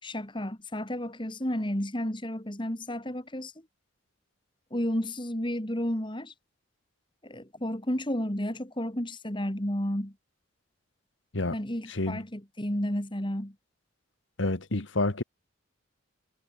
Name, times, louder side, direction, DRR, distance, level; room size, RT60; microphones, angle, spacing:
voice 1, 0.0-3.5 4.7-6.3 7.2-10.1 11.5-13.5, equal, 25° left, 2.6 m, -32 dB
voice 2, 11.9-12.2 14.4-15.2, left 2 dB, 65° left, 1.6 m, -28 dB
head